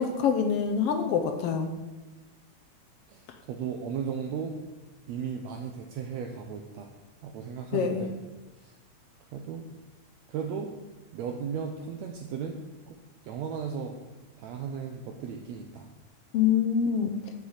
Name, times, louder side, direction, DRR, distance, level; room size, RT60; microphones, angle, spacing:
voice 1, 0.0-1.7 7.7-8.1 16.3-17.2, left 7 dB, 70° left, 5 dB, 1.4 m, -25 dB
voice 2, 3.5-4.6 5.1-6.9 7.2-8.2 8.6-8.7 9.3-9.7 10.3-10.7 11.1-12.6 12.9-13.0 13.2-14.0 14.4-15.9, right 7 dB, 75° right, 3 dB, 1.9 m, -35 dB
7.2 x 6.6 x 8.0 m, 1.1 s
omnidirectional pair, 3.4 m